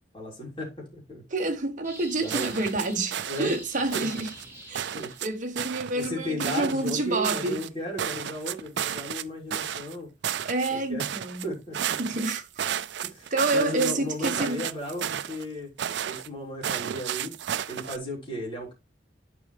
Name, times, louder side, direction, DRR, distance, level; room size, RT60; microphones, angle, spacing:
voice 1, 0.1-1.2 2.2-2.5 3.3-3.5 3.9-4.1 4.9-5.1 5.9-10.1 10.7-11.0 11.4-11.9 13.0-15.7 16.0-17.3 17.7-18.7, left 1 dB, 30° left, 3.4 m, -35 dB
voice 2, 1.3-4.3 4.7-4.9 5.2-7.6 10.4-11.5 12.0-12.6 13.3-14.6, right 2 dB, 45° right, 1.2 m, -28 dB
sound 1, 1.8-5.5, right 1 dB, 15° right, 2.4 m, -45 dB
sound 2, 2.3-3.6 3.9-4.5 4.8-5.3 5.6-6.1 6.4-7.7 8.0-9.2 9.5-10.0 10.2-10.7 11.0-11.5 11.7-13.9 14.2-15.5 15.8-16.3 16.6-18.0, right 9 dB, 70° right, 0.4 m, -32 dB
9.8 x 4.8 x 3.3 m
head